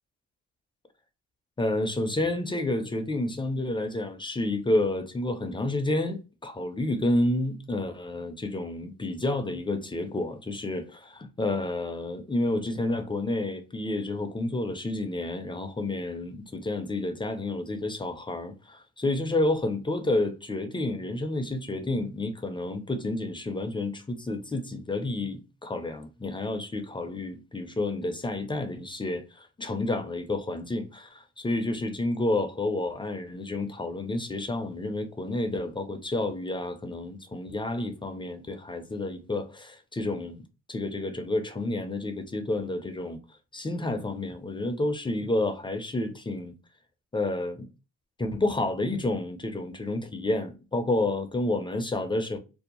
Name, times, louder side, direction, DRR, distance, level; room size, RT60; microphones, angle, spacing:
voice 1, 1.6-40.4 40.7-43.2 43.5-46.5 47.1-47.7 48.2-52.4, left 2 dB, 15° left, 0.4 m, -30 dB
2.6 x 2.0 x 2.8 m
cardioid pair, 90°, 30 cm